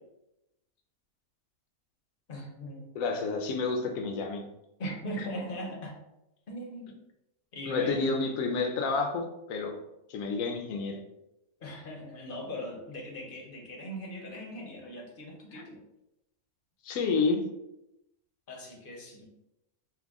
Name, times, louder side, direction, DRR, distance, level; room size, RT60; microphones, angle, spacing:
voice 1, 2.3-2.9 4.8-5.9 6.5-7.0 7.5-8.2 11.6-15.8 18.5-19.3, equal, 45° left, 0 dB, 0.8 m, -39 dB
voice 2, 2.9-4.4 7.7-9.8 10.1-11.0 15.5-15.6 16.8-17.4, left 4 dB, 70° left, 3 dB, 1.0 m, -29 dB
4.6 x 2.2 x 3.5 m, 0.88 s
omnidirectional pair, 1.5 m